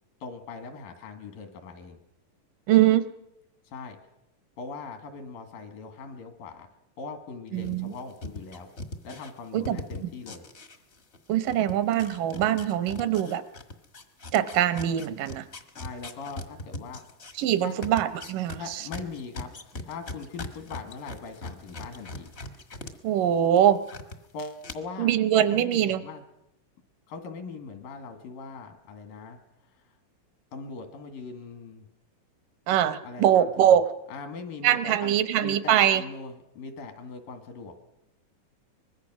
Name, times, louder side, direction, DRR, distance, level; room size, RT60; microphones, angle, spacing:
voice 1, 0.2-2.0 3.7-4.0 4.6-6.7 7.0-8.7 9.0-10.4 15.8-17.0 17.6-17.8 18.6-22.3 24.3-25.1 25.5-26.2 27.1-29.4 29.7-29.8 30.5-31.9 32.7-33.8 34.1-37.7, left 4 dB, 85° left, 7 dB, 3.7 m, -40 dB
voice 2, 2.7-3.1 7.5-7.9 9.5-10.1 11.3-13.4 14.3-15.5 17.4-18.9 23.0-23.8 25.0-26.0 32.7-33.8 34.6-36.0, right 11 dB, 80° right, 12 dB, 2.5 m, -23 dB
sound 1, 7.6-11.2 11.4-22.9 23.2-24.2 24.6-24.7, left 2 dB, 65° left, 0.6 m, -40 dB
24.0 x 21.0 x 6.2 m, 0.87 s
omnidirectional pair, 3.8 m